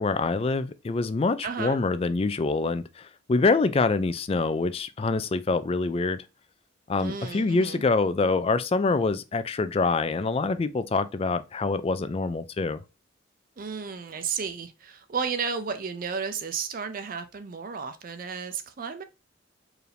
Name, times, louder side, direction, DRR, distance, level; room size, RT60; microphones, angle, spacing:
voice 1, 0.0-6.2 6.9-12.8, left 3 dB, 30° left, 0.3 m, -25 dB
voice 2, 1.4-1.8 7.0-7.8 13.6-19.0, right 6 dB, 45° right, 0.4 m, -33 dB
4.7 x 2.6 x 3.3 m
head